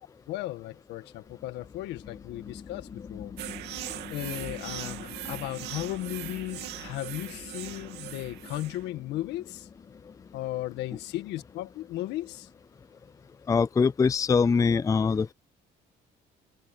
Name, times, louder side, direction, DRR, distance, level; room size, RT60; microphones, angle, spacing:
voice 1, 0.3-3.3 4.1-9.7 10.3-12.5, left 15 dB, 85° left, 1.8 m, -36 dB
sound 1, 1.3-13.3, left 6 dB, 35° left, 5.4 m, -47 dB
sound 2, 3.4-8.9, right 14 dB, 80° right, 2.6 m, -40 dB
voice 2, 13.5-15.3, left 5 dB, 20° left, 0.4 m, -23 dB
cardioid pair, 110°, 17 cm